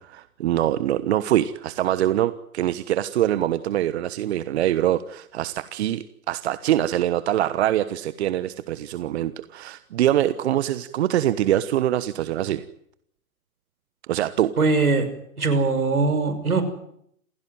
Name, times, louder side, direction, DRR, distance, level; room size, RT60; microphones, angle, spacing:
voice 1, 0.0-12.6 14.1-14.5, right 12 dB, 45° right, 14 dB, 1.3 m, -24 dB
voice 2, 14.6-15.1 15.4-16.6, right 3 dB, 80° right, 10 dB, 6.0 m, -21 dB
28.5 x 16.5 x 9.3 m, 0.73 s
figure-of-eight pair, 120°, 43 cm